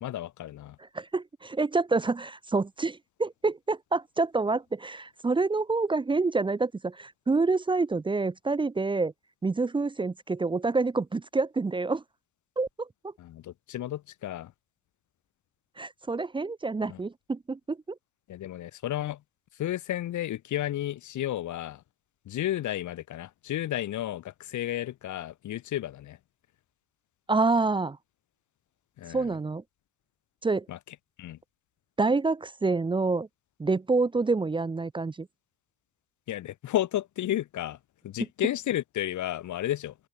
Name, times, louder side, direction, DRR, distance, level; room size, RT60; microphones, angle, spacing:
voice 1, 0.0-0.8 13.2-14.5 16.8-17.0 18.3-19.2 19.6-21.8 22.3-26.2 29.0-29.3 30.7-30.8 31.2-31.4 36.3-37.8 38.0-39.9, left 13 dB, 65° left, 2.4 m, -32 dB
voice 2, 0.9-9.1 9.4-12.0 12.6-12.9 15.8-17.8 27.3-28.0 29.1-29.6 30.4-30.6 32.0-33.3 33.6-35.3, right 3 dB, 15° right, 1.0 m, -27 dB
open air
cardioid pair, 175°, 32 cm